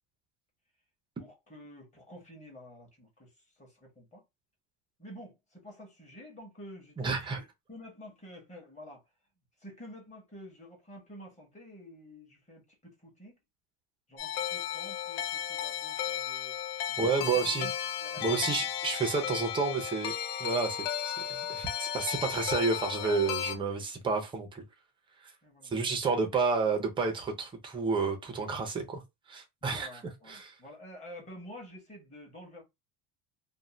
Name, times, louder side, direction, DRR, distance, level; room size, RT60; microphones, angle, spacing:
voice 1, 1.2-4.2 5.0-9.0 9.6-13.4 14.1-16.6 16.9-17.7 18.0-18.6 18.9-19.0 25.4-25.7 29.6-32.6, equal, 15° left, 0.9 m, -49 dB
voice 2, 7.0-7.4 17.0-17.7 18.2-20.1 20.4-20.8 21.0-24.6 25.6-29.0 29.3-30.0 30.3-30.5, right 4 dB, 10° right, 0.4 m, -30 dB
sound 1, 14.2-23.6, left 10 dB, 90° left, 0.7 m, -34 dB
2.5 x 2.1 x 3.1 m
cardioid pair, 150°, 45 cm